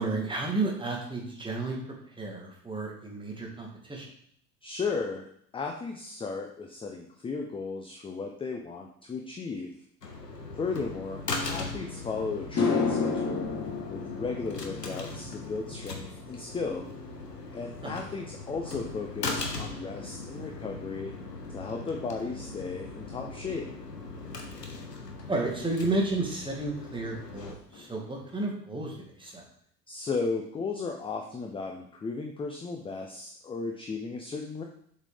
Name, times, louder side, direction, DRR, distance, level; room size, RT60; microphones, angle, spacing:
voice 1, 0.0-1.8 2.2-4.1 10.4-10.5 17.8-18.0 25.3-29.4, right 2 dB, 10° right, -1 dB, 1.7 m, -32 dB
voice 2, 4.6-5.3 5.5-9.7 10.6-13.5 13.9-16.9 17.5-21.1 21.5-23.7 29.9-34.6, left 4 dB, 10° left, 2 dB, 0.5 m, -35 dB
sound 1, 10.0-27.6, left 3 dB, 90° left, 0.8 m, -39 dB
sound 2, 11.8-11.9 12.4-20.9 21.2-21.6 25.2-25.3 26.9-27.0 27.3-27.5 27.7-28.3, left 4 dB, 30° left, 1.4 m, -34 dB
7.1 x 4.3 x 3.4 m, 0.64 s
figure-of-eight pair, 65°, 47 cm